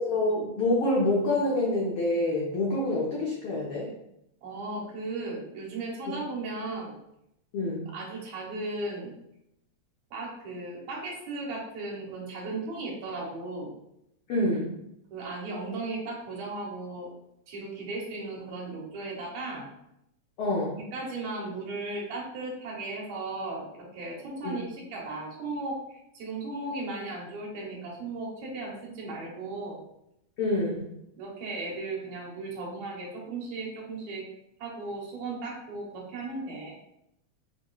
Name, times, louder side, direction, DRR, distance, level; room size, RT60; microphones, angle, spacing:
voice 1, 0.0-3.9 7.5-7.9 14.3-14.8 20.4-20.7 24.4-24.6 30.4-30.9, left 1 dB, 85° left, -3 dB, 1.2 m, -27 dB
voice 2, 4.4-7.0 7.9-9.2 10.1-13.7 15.1-17.1 17.5-19.7 20.9-29.8 31.2-34.3 34.6-36.8, right 2 dB, 70° right, -3 dB, 2.4 m, -36 dB
6.4 x 3.0 x 2.3 m, 0.82 s
omnidirectional pair, 3.4 m